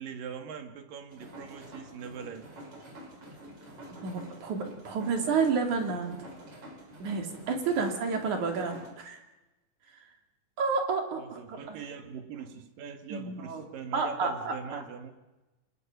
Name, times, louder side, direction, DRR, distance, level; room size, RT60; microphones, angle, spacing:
voice 1, 0.0-2.5 8.3-8.4 11.2-15.1, right 7 dB, 75° right, 6 dB, 3.6 m, -42 dB
sound 1, 1.1-8.9, right 1 dB, 40° right, 5.1 m, -48 dB
voice 2, 4.0-6.2 7.0-9.2 9.9-10.0 10.6-11.9 13.1-13.7 13.9-14.8, right 5 dB, 60° right, 3 dB, 4.0 m, -30 dB
28.5 x 26.5 x 6.0 m, 1.1 s
omnidirectional pair, 4.0 m